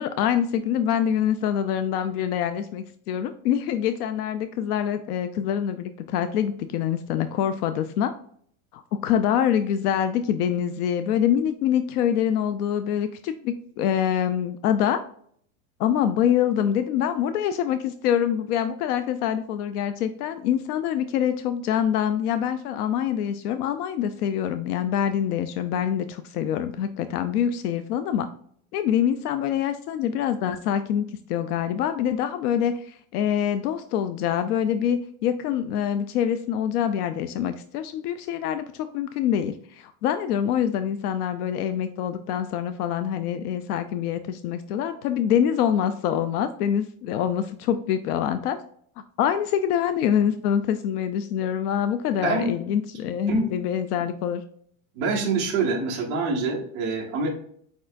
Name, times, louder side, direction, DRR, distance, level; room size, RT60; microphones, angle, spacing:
voice 1, 0.0-8.1 8.7-15.0 15.8-28.3 28.7-48.6 49.2-54.4, left 9 dB, 85° left, 10 dB, 0.5 m, -25 dB
voice 2, 54.9-57.3, right 4 dB, 15° right, -3 dB, 0.3 m, -25 dB
4.9 x 4.3 x 2.5 m, 0.62 s
supercardioid pair, 175°, 44 cm